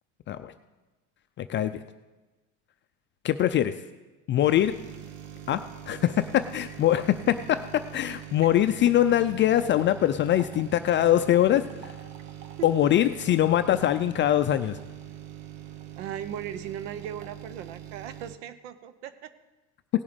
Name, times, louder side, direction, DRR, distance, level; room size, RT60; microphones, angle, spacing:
voice 1, 1.4-1.8 3.2-3.7 4.3-4.7 5.5-11.9 12.6-14.8, left 12 dB, 35° left, 10 dB, 0.4 m, -23 dB
sound 1, 4.4-18.4, right 11 dB, 70° right, 1.2 m, -43 dB
voice 2, 16.0-19.3, right 9 dB, 85° right, 13 dB, 0.9 m, -38 dB
17.5 x 7.0 x 5.1 m, 1.2 s
supercardioid pair, 125°, 35 cm